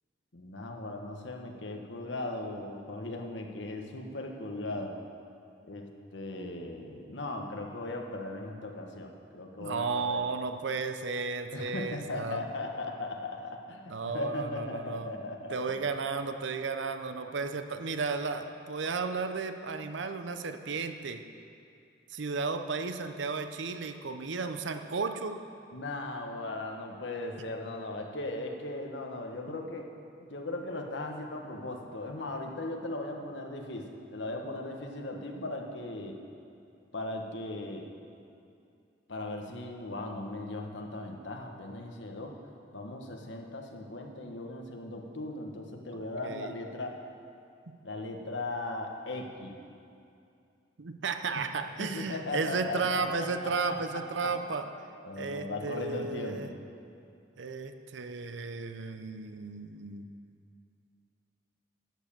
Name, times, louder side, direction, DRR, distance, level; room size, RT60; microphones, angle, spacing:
voice 1, 0.3-5.0 5.7-10.2 11.5-15.8 25.7-29.9 30.3-36.2 36.9-37.9 39.1-42.4 42.7-47.0 47.8-49.5 51.8-54.4 55.0-56.6, left 2 dB, 75° left, 2 dB, 1.3 m, -38 dB
voice 2, 9.6-12.4 13.9-15.1 15.5-21.2 22.1-25.4 45.9-46.5 50.8-54.7 55.2-56.5 57.4-60.1, right 4 dB, 75° right, 8 dB, 0.6 m, -34 dB
11.0 x 7.5 x 7.3 m, 2.5 s
head